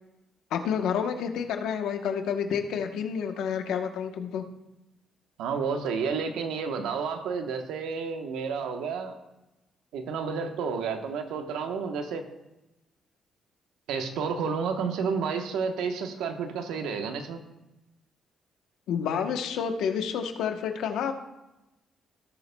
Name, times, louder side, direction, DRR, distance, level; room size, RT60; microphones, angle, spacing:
voice 1, 0.5-4.4 18.9-21.1, left 7 dB, 85° left, 6 dB, 1.0 m, -29 dB
voice 2, 5.4-9.1 9.9-12.3 13.9-17.4, right 5 dB, 90° right, 5 dB, 1.0 m, -30 dB
17.0 x 7.0 x 2.3 m, 0.97 s
cardioid pair, 90°, 0 cm